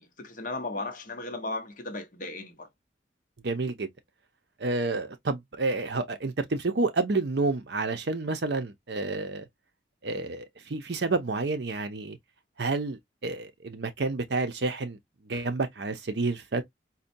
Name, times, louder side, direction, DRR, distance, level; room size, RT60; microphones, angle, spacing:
voice 1, 0.0-2.7, left 2 dB, 45° left, 0.7 m, -36 dB
voice 2, 3.4-3.9 4.6-9.4 10.0-12.2 12.6-15.0 15.2-16.6, right 3 dB, 60° right, 0.6 m, -29 dB
4.1 x 2.2 x 2.6 m
head